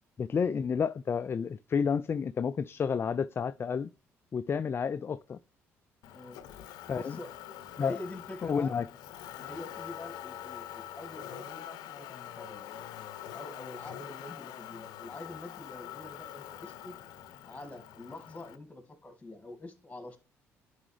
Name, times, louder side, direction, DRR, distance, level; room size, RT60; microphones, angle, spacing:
voice 1, 0.2-3.9 4.3-5.4 6.9-7.2 7.8-8.0 8.4-8.8, left 6 dB, 35° left, 0.3 m, -30 dB
Motor vehicle (road), 6.0-18.6, left 11 dB, 70° left, 0.6 m, -45 dB
voice 2, 6.9-7.3 7.8-8.7 9.3-12.7 13.3-17.0 17.4-20.2, left 2 dB, 20° left, 2.1 m, -45 dB
10.5 x 4.6 x 3.3 m
hypercardioid pair, 55°, 7 cm